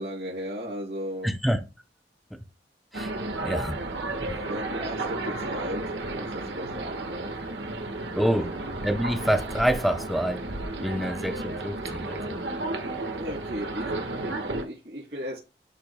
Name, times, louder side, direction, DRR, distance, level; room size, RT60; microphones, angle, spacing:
voice 1, 0.0-1.3 4.4-7.7 8.3-8.5 13.2-15.4, equal, 70° right, 2.7 m, -36 dB
voice 2, 1.2-1.6 2.9-3.1 3.4-3.8 4.2-4.4 8.1-8.5 8.8-10.4 10.8-12.4, equal, ahead, 0.7 m, -27 dB
sound 1, 2.9-14.6, right 2 dB, 85° right, 1.5 m, -33 dB
10.5 x 5.1 x 2.2 m
head